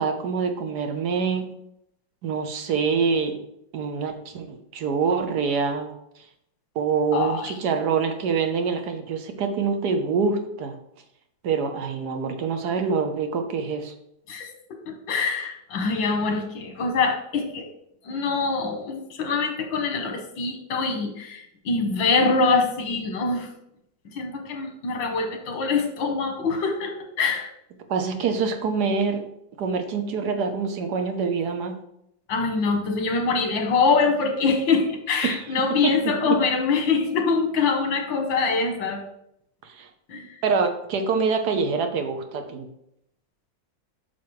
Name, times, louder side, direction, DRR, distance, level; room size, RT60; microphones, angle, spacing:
voice 1, 0.0-1.5 2.2-3.4 3.7-5.9 6.7-10.7 11.4-13.9 27.9-29.2 29.6-31.8 35.2-35.4 35.7-36.4 39.6-39.9 40.4-42.7, right 5 dB, 65° right, 6 dB, 1.3 m, -25 dB
voice 2, 7.1-7.5 14.3-14.5 14.9-17.7 18.0-23.5 24.1-27.5 32.3-39.0 40.1-40.4, left 4 dB, 80° left, 4 dB, 1.9 m, -24 dB
8.4 x 6.1 x 3.2 m, 0.78 s
omnidirectional pair, 2.0 m